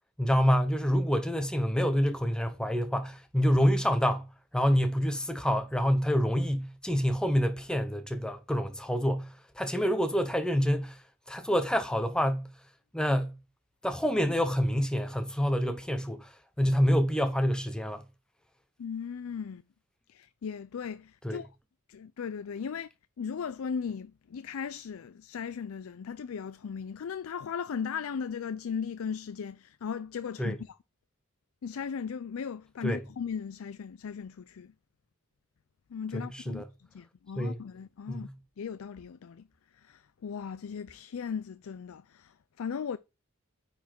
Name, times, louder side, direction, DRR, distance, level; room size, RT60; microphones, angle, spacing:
voice 1, 0.2-4.2 4.5-9.3 9.6-11.0 11.3-12.5 12.9-13.3 13.8-16.3 16.6-18.0 21.2-21.4 30.4-30.6 32.8-33.0 36.1-36.6 37.4-37.6 38.1-38.3, equal, 5° left, 0.7 m, -27 dB
voice 2, 18.8-19.6 20.1-21.5 21.9-22.9 23.2-30.8 31.6-34.7 35.9-36.6 36.9-38.3 38.6-39.4 39.8-43.0, left 6 dB, 80° left, 0.4 m, -37 dB
9.4 x 4.2 x 4.5 m
head